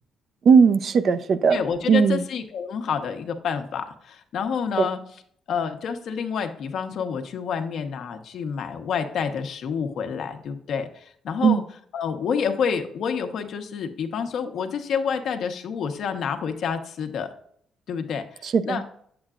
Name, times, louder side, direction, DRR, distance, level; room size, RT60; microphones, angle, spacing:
voice 1, 0.5-1.6 1.9-2.2 4.8-4.9 11.4-11.6 18.4-18.8, right 6 dB, 55° right, 11 dB, 0.6 m, -18 dB
voice 2, 1.5-5.0 5.5-11.6 11.9-17.3 17.9-18.3 18.6-18.8, left 6 dB, 70° left, 6 dB, 1.0 m, -28 dB
8.7 x 7.9 x 2.5 m, 0.64 s
cardioid pair, 90°, 0 cm